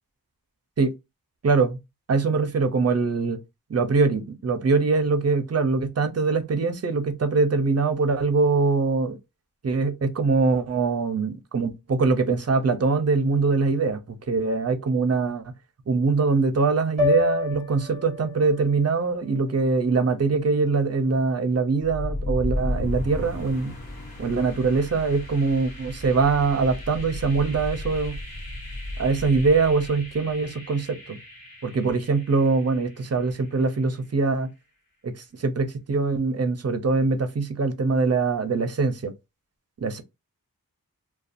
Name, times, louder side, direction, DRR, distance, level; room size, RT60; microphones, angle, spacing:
voice 1, 1.4-1.8 2.1-3.4 3.7-9.2 9.6-15.4 15.9-23.7 24.2-28.2 29.0-31.2 31.6-34.5 35.0-39.1 39.8-40.0, right 4 dB, 45° right, 0.5 m, -23 dB
sound 1, 17.0-21.2, left 5 dB, ahead, 1.3 m, -31 dB
sound 2, 21.8-33.6, left 1 dB, 70° left, 1.0 m, -35 dB
2.5 x 2.3 x 2.4 m
wide cardioid pair, 45°, 37 cm